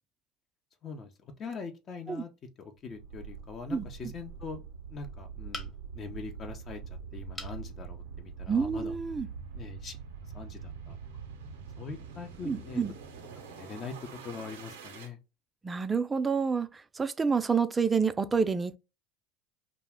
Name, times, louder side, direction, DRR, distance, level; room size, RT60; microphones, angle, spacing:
voice 1, 0.8-2.3 2.6-4.6 4.9-8.9 9.5-10.0 10.3-11.0 11.8-12.8 13.5-15.2, left 5 dB, 40° left, 0.6 m, -42 dB
sound 1, 2.9-15.1, right 6 dB, 85° right, 0.5 m, -44 dB
sound 2, 5.5-6.1 7.3-7.6 8.2-8.3 8.6-8.7, left 2 dB, 20° left, 0.9 m, -42 dB
voice 2, 8.5-9.3 12.4-12.9 15.6-18.8, right 5 dB, 20° right, 0.3 m, -28 dB
2.4 x 2.1 x 3.4 m
hypercardioid pair, 85°, 0 cm